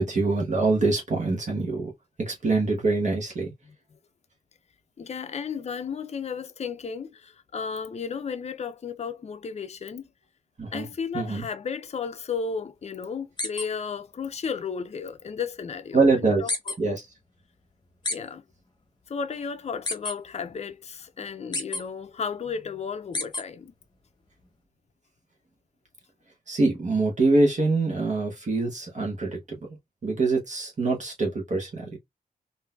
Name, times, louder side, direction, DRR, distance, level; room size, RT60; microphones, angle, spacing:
voice 1, 0.0-1.9 2.2-3.5 10.6-10.9 11.1-11.4 15.9-16.4 16.8-17.1 26.5-29.6 30.0-32.0, right 3 dB, 50° right, 1.1 m, -24 dB
voice 2, 5.0-10.1 10.7-16.5 16.8-16.9 18.1-18.4 19.1-23.7, left 6 dB, 45° left, 0.5 m, -34 dB
sound 1, 13.4-13.7 16.5-16.8 18.0-18.2 19.9-20.1 21.5-21.8 23.1-23.4, left 2 dB, 30° left, 0.9 m, -28 dB
3.8 x 2.6 x 2.2 m
wide cardioid pair, 115°, 16 cm